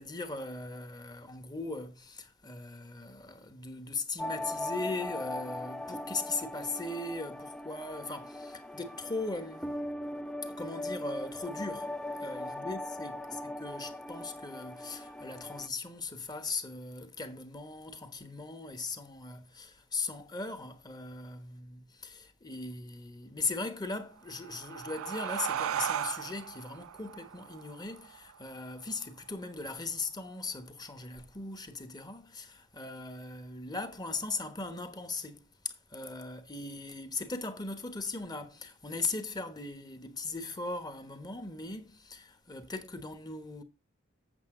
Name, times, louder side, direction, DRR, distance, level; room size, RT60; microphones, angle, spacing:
voice 1, 0.0-9.8 10.4-11.9 12.2-43.6, left 3 dB, 20° left, 1.1 m, -39 dB
sound 1, 4.2-15.7, left 1 dB, 5° left, 0.4 m, -39 dB
sound 2, 24.2-29.4, right 9 dB, 75° right, 0.4 m, -37 dB
8.1 x 7.3 x 3.7 m
head